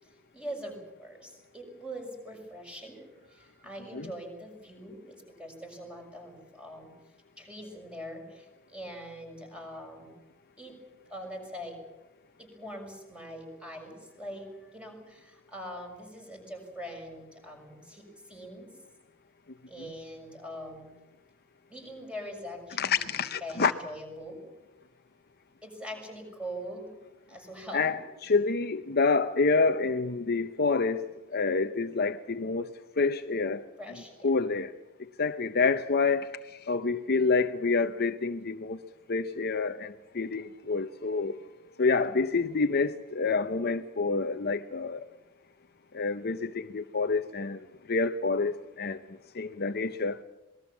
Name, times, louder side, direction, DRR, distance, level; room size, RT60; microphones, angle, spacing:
voice 1, 0.0-6.9 7.4-10.1 10.6-10.7 11.1-11.8 12.4-18.7 19.7-20.9 21.7-24.4 25.6-26.9 27.3-28.0 33.8-34.3 37.1-37.3, equal, 5° right, 6.4 m, -43 dB
voice 2, 22.8-23.7 27.7-31.1 31.3-32.7 33.0-33.6 34.2-34.7 35.2-36.3 36.7-38.8 39.1-41.4 41.8-45.0 45.9-47.6 47.9-49.0 49.3-50.2, left 4 dB, 45° left, 0.7 m, -27 dB
26.5 x 20.5 x 7.2 m
head